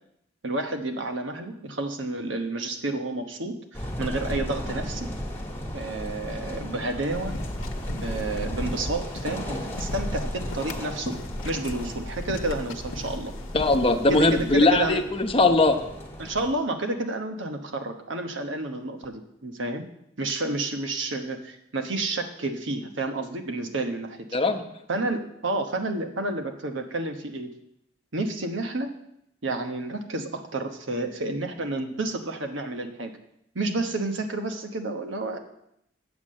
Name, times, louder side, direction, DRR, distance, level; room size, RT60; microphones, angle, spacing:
voice 1, 0.4-5.1 5.7-7.4 7.9-11.2 11.4-13.3 14.1-15.0 16.2-19.8 20.2-24.4 24.9-27.5 28.1-28.9 29.4-33.1 33.5-35.4, right 2 dB, 65° right, 4 dB, 1.1 m, -30 dB
sound 1, 3.7-16.5, equal, 10° left, 1.6 m, -35 dB
sound 2, 7.1-14.6, left 1 dB, 85° left, 1.0 m, -36 dB
voice 2, 13.5-15.8 24.3-24.6, left 2 dB, 30° left, 4 dB, 0.9 m, -20 dB
8.3 x 7.3 x 7.5 m, 0.77 s
head